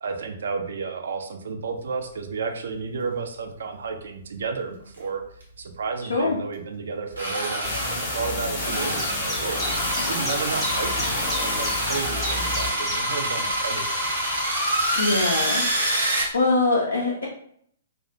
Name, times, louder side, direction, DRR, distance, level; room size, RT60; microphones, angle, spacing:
voice 1, 0.0-5.3 5.6-9.6 10.0-14.1, right 5 dB, 60° right, 5 dB, 0.3 m, -32 dB
sound 1, 5.0-5.1 5.4-5.5 7.1-16.2, right 1 dB, 75° right, 0.8 m, -27 dB
sound 2, 7.6-12.7, left 2 dB, 35° left, 0.8 m, -30 dB
Chirp tweet, 9.0-15.4, left 1 dB, 5° left, 0.6 m, -36 dB
voice 2, 15.0-15.6 16.3-17.3, left 3 dB, 70° left, -3 dB, 0.4 m, -22 dB
2.3 x 2.0 x 2.5 m, 0.65 s
figure-of-eight pair, 115°, 0 cm